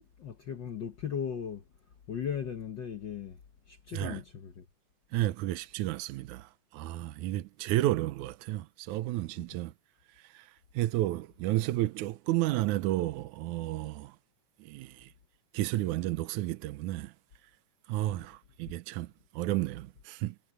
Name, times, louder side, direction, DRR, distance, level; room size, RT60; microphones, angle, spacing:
voice 1, 0.0-1.6 2.1-3.4 3.7-4.6, left 8 dB, 60° left, 1.2 m, -37 dB
voice 2, 5.1-9.7 10.2-14.2 14.6-15.1 15.5-17.1 17.9-20.4, right 16 dB, 85° right, 2.2 m, -32 dB
omnidirectional pair, 3.4 m